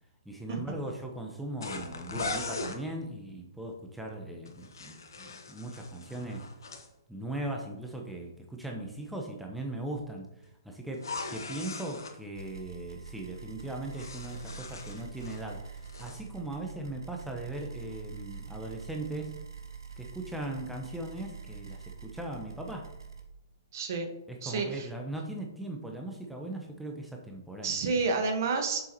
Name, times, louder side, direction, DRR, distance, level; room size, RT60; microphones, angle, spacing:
voice 1, 0.2-6.5 7.1-19.5 20.0-22.9 24.3-27.8, right 1 dB, ahead, 0 dB, 0.9 m, -39 dB
sound 1, 1.6-2.8 4.5-6.9 10.9-12.2 13.6-15.5 15.8-16.2, left 3 dB, 80° left, 1.1 m, -39 dB
sound 2, 12.3-23.2, right 6 dB, 85° right, 1.3 m, -45 dB
voice 2, 23.7-24.1 24.4-24.9 27.6-28.8, right 4 dB, 55° right, 5 dB, 1.4 m, -29 dB
7.0 x 6.1 x 3.0 m, 0.87 s
hypercardioid pair, 130°, 2 cm